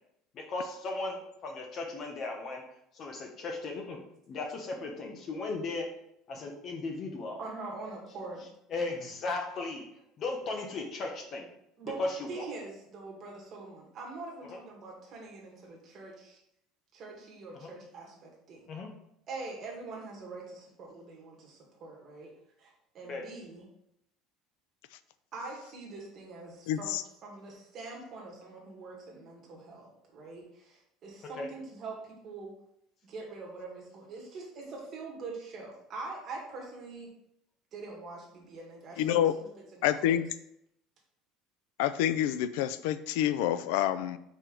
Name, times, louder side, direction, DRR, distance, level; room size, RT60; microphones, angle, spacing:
voice 1, 0.3-2.6 2.9-4.0 4.3-5.9 6.3-7.4 8.7-9.9 10.2-11.5 12.0-12.5 14.5-14.6 17.5-17.7 18.7-18.9 23.1-23.3 31.2-31.5, left 3 dB, 30° left, 3 dB, 0.9 m, -36 dB
voice 2, 7.4-8.4 11.8-16.4 16.9-18.7 19.3-22.3 22.6-23.6 25.3-32.0 32.2-32.5 33.0-37.1 37.7-40.1, right 3 dB, 30° right, -2 dB, 1.7 m, -44 dB
voice 3, 26.7-27.0 39.0-39.3 39.8-40.3 41.8-44.2, left 11 dB, 75° left, 13 dB, 0.3 m, -27 dB
4.8 x 4.3 x 5.0 m, 0.76 s
cardioid pair, 180°, 0 cm